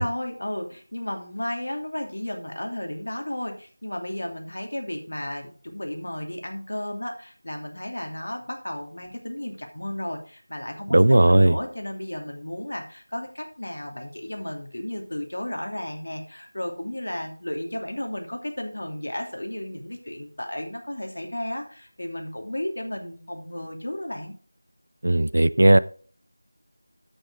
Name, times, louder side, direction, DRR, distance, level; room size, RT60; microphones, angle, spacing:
voice 1, 0.0-24.3, left 1 dB, 75° left, 3 dB, 2.7 m, -33 dB
voice 2, 10.9-11.6 25.0-25.8, right 1 dB, 60° right, 16 dB, 0.5 m, -16 dB
8.8 x 8.3 x 3.8 m, 0.41 s
figure-of-eight pair, 175°, 0 cm